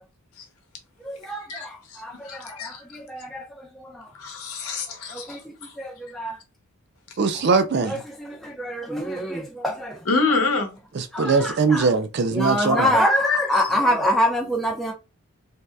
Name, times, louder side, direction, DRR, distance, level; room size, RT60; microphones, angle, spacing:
voice 1, 1.0-4.1 5.1-5.4 5.8-6.4 7.8-10.0 11.1-11.9 12.3-14.9, left 1 dB, ahead, 0.7 m, -25 dB
voice 2, 2.2-2.8 4.2-5.4 10.1-10.7, left 3 dB, 85° left, 0.9 m, -25 dB
voice 3, 7.2-8.0 10.9-12.9, right 4 dB, 50° right, 0.4 m, -21 dB
3.2 x 2.6 x 2.3 m
head